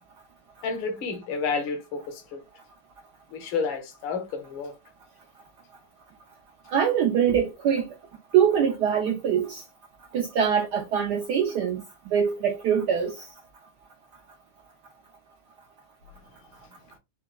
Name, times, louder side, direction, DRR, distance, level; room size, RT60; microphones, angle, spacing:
voice 1, 0.6-2.4 3.3-4.7, left 5 dB, 70° left, 1.6 m, -30 dB
voice 2, 6.7-7.9 8.3-9.6 10.1-13.2, right 8 dB, 75° right, 0.9 m, -23 dB
4.6 x 2.2 x 2.2 m
omnidirectional pair, 2.3 m